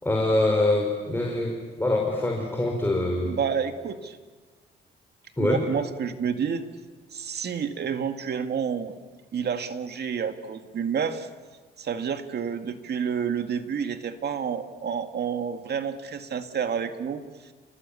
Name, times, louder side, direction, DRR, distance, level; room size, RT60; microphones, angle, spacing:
voice 1, 0.0-3.4 5.4-5.6, left 2 dB, 10° left, 1 dB, 4.8 m, -24 dB
voice 2, 3.2-4.2 5.4-6.8 7.1-9.0 9.3-11.3 11.8-17.2, right 7 dB, 55° right, 7 dB, 2.2 m, -29 dB
29.5 x 19.5 x 8.6 m, 1.4 s
cardioid pair, 90°, 20 cm